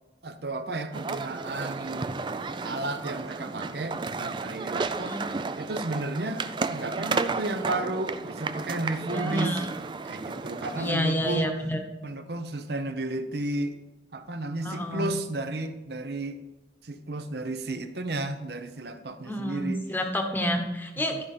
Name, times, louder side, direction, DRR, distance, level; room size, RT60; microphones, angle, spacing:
voice 1, 0.2-2.2 2.6-6.4 6.7-9.6 10.1-11.5 12.0-13.7 14.1-16.4 16.8-19.8 21.1-21.2, right 2 dB, 60° right, 9 dB, 0.8 m, -33 dB
sound 1, 0.9-10.9, right 4 dB, 25° right, 0.4 m, -33 dB
voice 2, 9.1-9.7 10.8-11.8 14.6-15.2 19.2-21.2, equal, 10° left, 4 dB, 1.0 m, -29 dB
13.0 x 5.5 x 5.0 m, 1.0 s
head